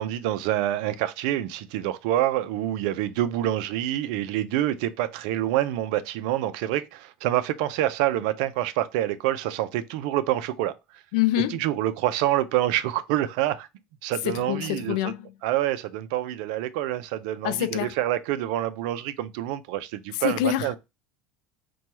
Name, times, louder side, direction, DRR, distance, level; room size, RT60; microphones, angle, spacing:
voice 1, 0.0-10.7 11.5-13.7 14.0-15.1 15.4-20.8, right 13 dB, 80° right, 0.4 m, -27 dB
voice 2, 11.1-11.6 14.3-15.2 17.4-17.9 20.2-20.8, left 14 dB, 85° left, 0.4 m, -25 dB
4.3 x 2.3 x 2.9 m
supercardioid pair, 105°, 4 cm